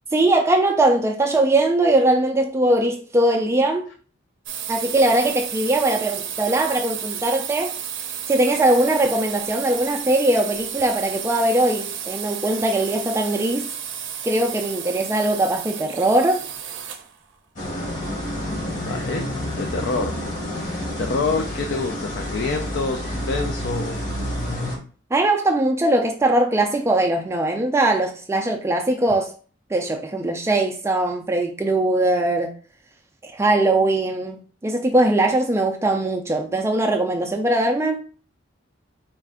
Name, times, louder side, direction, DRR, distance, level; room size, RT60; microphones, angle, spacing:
voice 1, 0.1-3.9 4.7-7.7 8.3-13.7 14.2-16.5 25.1-29.3 29.7-32.5 33.2-38.0, right 2 dB, 15° right, 0.3 m, -20 dB
sound 1, 4.5-17.1, right 8 dB, 65° right, 0.6 m, -32 dB
sound 2, 17.6-24.8, equal, 40° left, 1.1 m, -29 dB
voice 2, 18.8-20.1 20.5-24.0, left 4 dB, 55° left, 0.4 m, -27 dB
4.3 x 2.4 x 3.6 m
head